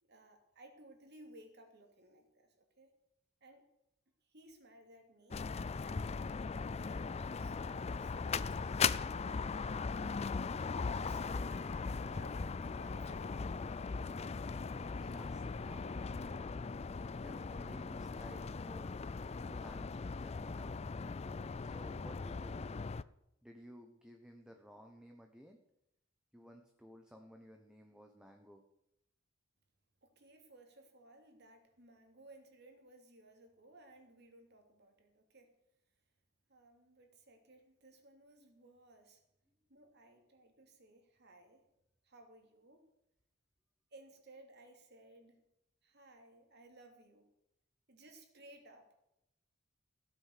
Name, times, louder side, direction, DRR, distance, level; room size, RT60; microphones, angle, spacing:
voice 1, 0.0-2.9 3.4-3.7 4.2-5.5 6.1-7.6 7.9-9.9 10.7-13.9 30.0-35.5 36.5-39.2 39.7-41.7 42.0-42.9 43.9-45.5 45.8-47.3 47.9-48.9, right 1 dB, 55° right, 4 dB, 3.0 m, -60 dB
sound 1, 5.3-23.0, left 5 dB, 30° left, 0.4 m, -39 dB
voice 2, 14.7-16.1 17.2-20.8 21.6-22.9 23.4-25.6 26.3-28.6, equal, 5° right, 3 dB, 1.1 m, -56 dB
16.0 x 8.9 x 6.8 m, 0.85 s
head